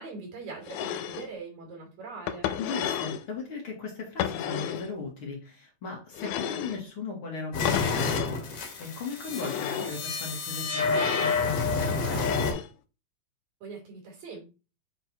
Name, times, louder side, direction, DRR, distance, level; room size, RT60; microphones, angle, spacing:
voice 1, 0.0-2.5 13.6-14.4, right 4 dB, 70° right, 1 dB, 3.9 m, -42 dB
sound 1, 0.6-1.3 2.3-3.2 4.2-4.9 6.1-6.8 7.7-8.4 9.3-10.0 10.8-11.4 12.1-12.7, left 10 dB, 90° left, 2.1 m, -32 dB
voice 2, 2.6-12.5, left 4 dB, 50° left, -1 dB, 2.6 m, -37 dB
sound 2, 7.5-12.5, left 4 dB, 70° left, 2.8 m, -29 dB
7.1 x 3.8 x 4.6 m, 0.31 s
omnidirectional pair, 3.4 m